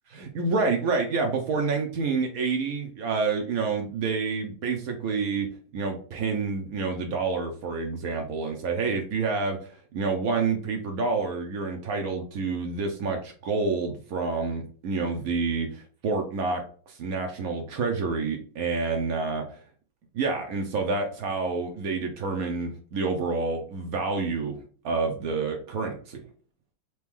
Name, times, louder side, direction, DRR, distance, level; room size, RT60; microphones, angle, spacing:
voice 1, 0.1-5.5 5.7-19.6 20.1-24.6 24.8-26.2, right 4 dB, 85° right, 3 dB, 0.7 m, -28 dB
4.1 x 3.0 x 3.5 m, 0.42 s
omnidirectional pair, 2.4 m